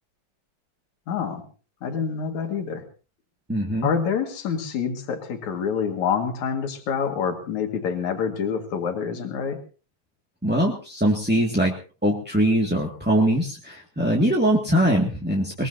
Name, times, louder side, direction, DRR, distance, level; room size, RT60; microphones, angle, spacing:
voice 1, 1.1-1.4 1.8-2.9 3.8-9.6, left 6 dB, 75° left, 4 dB, 3.4 m, -27 dB
voice 2, 3.5-3.9 10.4-11.7 12.0-15.7, equal, 5° right, -2 dB, 1.6 m, -22 dB
22.0 x 21.0 x 2.8 m, 0.36 s
omnidirectional pair, 3.3 m